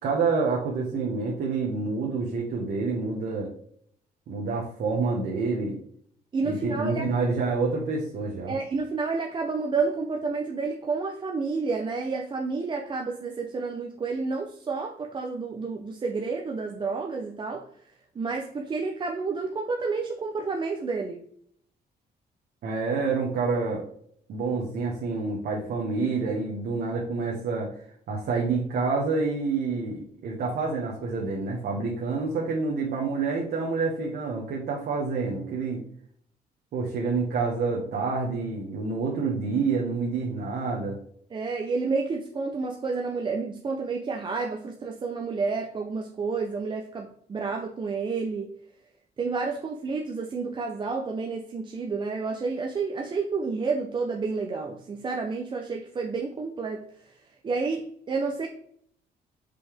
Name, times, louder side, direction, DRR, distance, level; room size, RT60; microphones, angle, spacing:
voice 1, 0.0-3.5 4.3-5.8 6.4-8.5 22.6-23.8 24.3-27.7 28.1-35.8 36.7-41.0, right 4 dB, 70° right, -2 dB, 1.4 m, -28 dB
voice 2, 6.3-7.1 8.5-17.7 18.2-21.2 41.3-48.5 49.2-56.8 57.4-58.5, right 4 dB, 30° right, 2 dB, 0.6 m, -30 dB
5.5 x 5.3 x 3.5 m, 0.64 s
cardioid pair, 155°, 17 cm